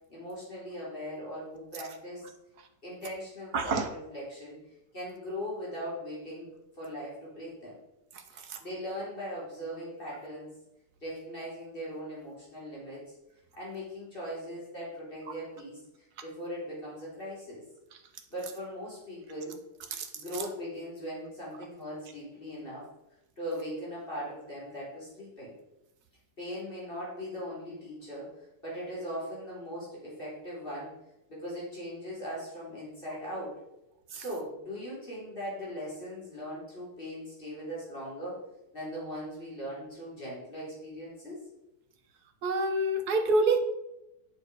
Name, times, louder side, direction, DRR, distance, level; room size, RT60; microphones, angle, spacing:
voice 1, 0.1-2.2 2.8-4.6 4.9-6.5 6.8-7.8 8.3-10.5 11.0-13.1 13.6-15.8 16.2-17.6 18.3-19.6 20.1-22.9 23.4-25.5 26.4-30.9 31.3-33.5 34.1-38.4 38.7-41.4, equal, 35° left, -6 dB, 4.5 m, -39 dB
voice 2, 3.5-3.9 8.1-8.6 19.9-20.1 34.1-34.2 42.4-43.6, right 2 dB, 85° right, 6 dB, 1.7 m, -27 dB
9.0 x 6.6 x 5.1 m, 0.88 s
omnidirectional pair, 1.6 m